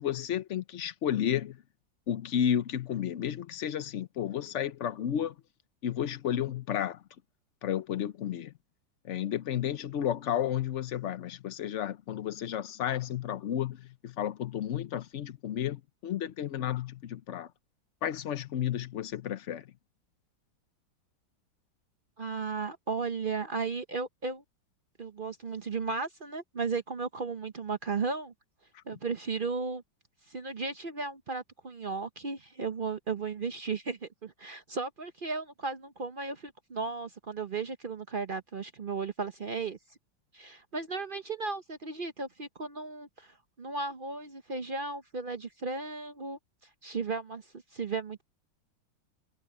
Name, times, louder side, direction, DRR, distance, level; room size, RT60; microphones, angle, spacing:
voice 1, 0.0-1.6 2.1-5.3 5.8-7.0 7.6-8.5 9.0-17.5 18.0-19.7, left 10 dB, 75° left, 0.6 m, -32 dB
voice 2, 22.2-24.4 25.0-28.3 28.9-29.8 30.3-39.8 40.3-46.4 46.8-47.4 47.7-48.2, right 4 dB, 50° right, 0.6 m, -35 dB
omnidirectional pair, 2.2 m